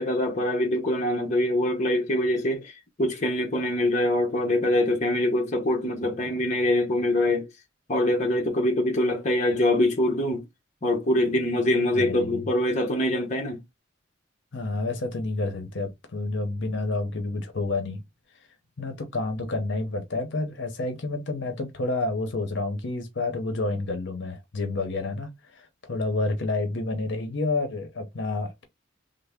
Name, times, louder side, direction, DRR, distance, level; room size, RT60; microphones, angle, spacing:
voice 1, 0.0-7.5 7.9-10.4 10.8-13.6, left 1 dB, 35° left, 0.8 m, -24 dB
voice 2, 11.9-12.5 14.5-18.0 18.8-28.6, left 2 dB, 65° left, 0.8 m, -29 dB
3.4 x 2.0 x 3.5 m
head